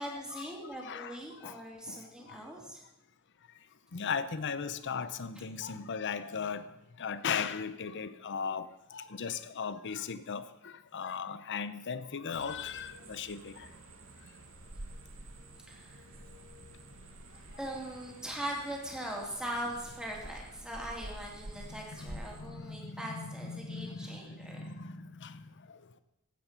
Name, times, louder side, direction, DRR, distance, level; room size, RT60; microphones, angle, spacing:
voice 1, 0.0-2.8 15.7-16.2 17.6-24.6, right 1 dB, 5° right, -1 dB, 2.8 m, -41 dB
voice 2, 0.8-1.2 1.4-1.5 1.9-2.0 3.9-6.7 7.0-10.4 10.9-13.5 22.0-22.2 22.6-25.3, left 6 dB, 55° left, 14 dB, 0.7 m, -37 dB
sound 1, 12.3-22.4, right 1 dB, 65° right, 1.7 m, -49 dB
14.5 x 8.6 x 5.7 m, 0.91 s
head